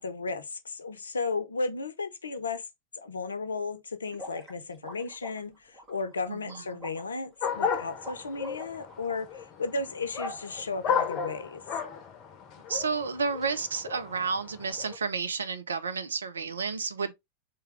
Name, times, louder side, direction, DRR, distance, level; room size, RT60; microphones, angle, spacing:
voice 1, 0.0-2.6 2.9-11.6, left 3 dB, 75° left, 0.6 m, -34 dB
sound 1, 4.1-9.1, left 1 dB, 30° right, 1.8 m, -46 dB
voice 2, 6.3-6.6 12.7-17.1, right 5 dB, 70° right, 0.5 m, -31 dB
sound 2, 7.4-15.0, left 6 dB, 35° left, 0.9 m, -34 dB
3.4 x 3.3 x 3.1 m
figure-of-eight pair, 90°, 0 cm